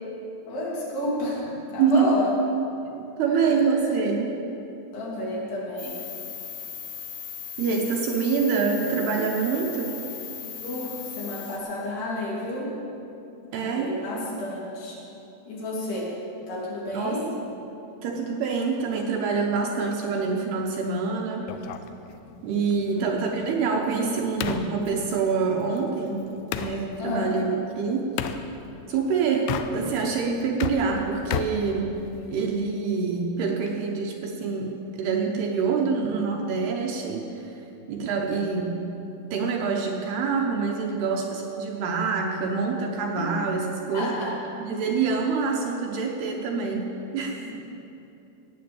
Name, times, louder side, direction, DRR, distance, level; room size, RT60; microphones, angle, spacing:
voice 1, 0.5-2.3 4.9-6.0 10.3-12.7 13.6-15.0 15.5-16.1 16.5-17.3 22.9-23.2 27.0-27.3 43.9-44.4 47.5-47.6, left 2 dB, 60° left, -5 dB, 4.8 m, -31 dB
voice 2, 1.8-2.1 2.9-4.3 7.6-10.0 13.5-14.0 16.9-17.3 18.0-21.6 22.4-26.3 26.6-27.5 27.8-28.2 28.9-31.9 32.3-37.6 37.9-38.7 39.3-44.1 44.6-47.5, right 5 dB, 70° right, 0 dB, 2.8 m, -26 dB
sound 1, 5.8-11.6, left 7 dB, 45° left, 2.8 m, -38 dB
sound 2, 21.5-26.8 28.2-28.4 29.3-30.1 30.4-32.4, left 9 dB, 85° left, 2.8 m, -34 dB
18.0 x 9.2 x 7.1 m, 2.9 s
omnidirectional pair, 5.4 m